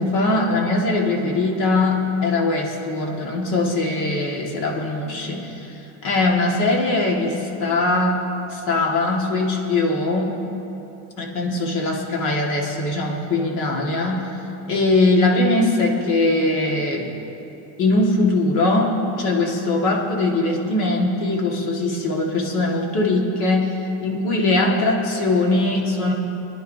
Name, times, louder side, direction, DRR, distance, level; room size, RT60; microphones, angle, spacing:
voice 1, 0.0-5.7 6.0-8.2 8.5-10.3 11.2-14.3 14.7-17.1 17.8-26.1, left 2 dB, 55° left, -1 dB, 1.9 m, -21 dB
26.0 x 10.5 x 2.8 m, 3.0 s
cardioid pair, 180°, 38 cm